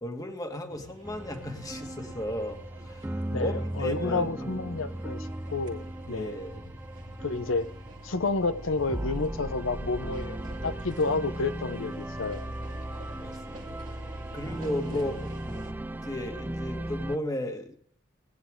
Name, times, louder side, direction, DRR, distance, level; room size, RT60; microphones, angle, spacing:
voice 1, 0.0-4.3 6.1-6.7 12.8-13.8 14.3-15.3 16.0-17.7, left 1 dB, 20° left, 1.7 m, -35 dB
sound 1, 0.7-15.7, equal, 40° right, 2.1 m, -47 dB
sound 2, 1.0-17.2, right 1 dB, 10° right, 0.4 m, -37 dB
voice 2, 3.3-6.4 7.2-7.7 8.0-12.5 14.9-15.1, left 3 dB, 80° left, 0.8 m, -30 dB
19.0 x 9.8 x 3.7 m
head